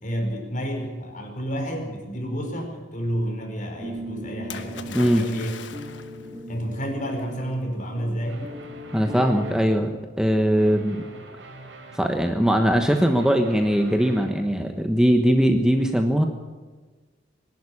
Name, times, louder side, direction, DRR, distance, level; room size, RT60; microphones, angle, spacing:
voice 1, 0.0-5.5 6.5-8.5, equal, 45° left, 3 dB, 4.9 m, -30 dB
sound 1, 3.8-9.9, equal, 20° right, 1.7 m, -38 dB
Splash splatter, 4.5-6.3 7.2-7.3, left 5 dB, 75° left, 1.3 m, -39 dB
sound 2, 8.2-9.9 10.6-12.1 12.6-14.4, right 2 dB, 80° right, 4.0 m, -45 dB
voice 2, 8.9-9.9 10.2-11.0 11.9-16.2, equal, 5° right, 4 dB, 1.1 m, -20 dB
22.5 x 11.5 x 10.0 m, 1.3 s
head